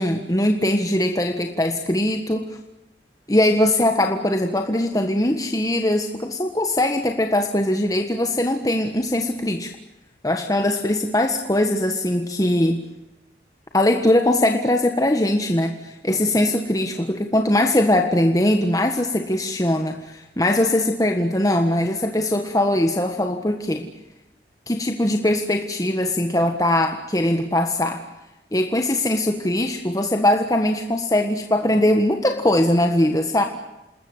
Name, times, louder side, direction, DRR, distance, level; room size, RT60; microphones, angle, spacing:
voice 1, 0.0-2.5 3.3-9.7 10.2-12.8 13.7-23.9 24.7-28.0 28.5-33.4, left 1 dB, 20° left, 5 dB, 1.5 m, -21 dB
28.0 x 20.5 x 8.1 m, 0.99 s
head